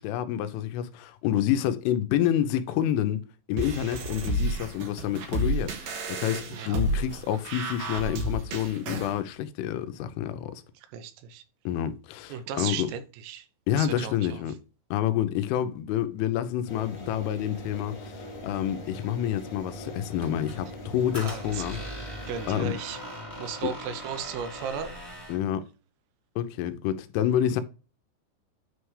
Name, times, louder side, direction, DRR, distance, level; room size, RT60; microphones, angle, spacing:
voice 1, 0.0-3.2 3.5-10.5 11.7-12.9 13.7-14.5 14.9-21.8 22.2-22.8 23.6-23.7 25.3-25.7 26.4-27.6, left 11 dB, 80° left, 3.1 m, -28 dB
sound 1, 3.6-9.1, right 1 dB, 60° right, 2.6 m, -31 dB
voice 2, 10.9-11.4 12.3-13.5 13.8-14.4 21.2-21.9 22.3-23.0 23.4-24.9, right 8 dB, 80° right, 3.4 m, -36 dB
Table Fan, 16.7-22.5, left 1 dB, 55° left, 1.6 m, -41 dB
Squeak, 20.2-25.5, equal, 10° right, 1.1 m, -41 dB
9.4 x 3.3 x 4.7 m
omnidirectional pair, 5.9 m